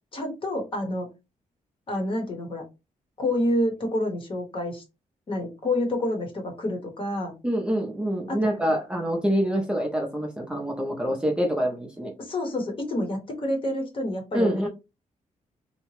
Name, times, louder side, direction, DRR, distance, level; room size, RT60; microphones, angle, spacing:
voice 1, 0.1-1.1 1.9-2.6 3.2-4.8 5.3-7.3 8.3-8.4 12.2-14.7, left 1 dB, 40° left, 0.9 m, -28 dB
voice 2, 7.4-12.1 14.3-14.7, equal, 5° right, 0.5 m, -26 dB
2.8 x 2.2 x 3.0 m
wide cardioid pair, 145°, 14 cm